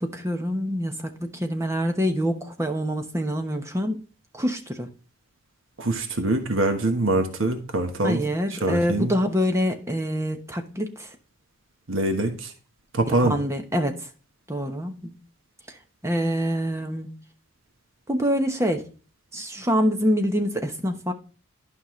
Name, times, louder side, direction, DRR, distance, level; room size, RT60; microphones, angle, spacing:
voice 1, 0.0-4.0 4.3-4.9 8.0-11.1 13.2-14.1 14.5-15.2 16.0-17.1 18.1-18.8 19.3-21.1, equal, 15° right, 1.0 m, -25 dB
voice 2, 5.8-8.2 8.5-9.1 11.9-12.5 12.9-13.4, right 2 dB, 70° right, 1.3 m, -24 dB
11.5 x 5.5 x 3.1 m
head